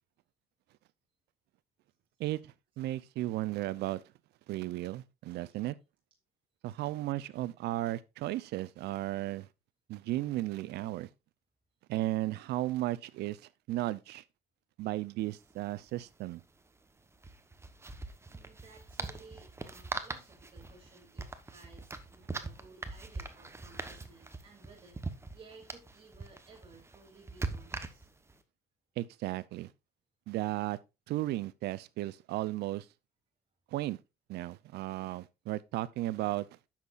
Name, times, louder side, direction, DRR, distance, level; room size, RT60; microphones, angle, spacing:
voice 1, 2.2-4.0 4.5-5.8 6.6-9.5 9.9-11.1 11.9-13.4 13.7-14.2 14.8-16.4 29.0-29.7 30.3-30.8 31.1-32.9 33.7-34.0 34.3-36.5, right 16 dB, 75° right, 0.6 m, -35 dB
sound 1, 15.2-15.3 15.5-15.7 17.1-28.3, right 3 dB, 15° right, 1.1 m, -42 dB
voice 2, 18.3-28.1, right 4 dB, 30° right, 3.0 m, -57 dB
10.5 x 7.4 x 2.5 m
cardioid pair, 110°, 17 cm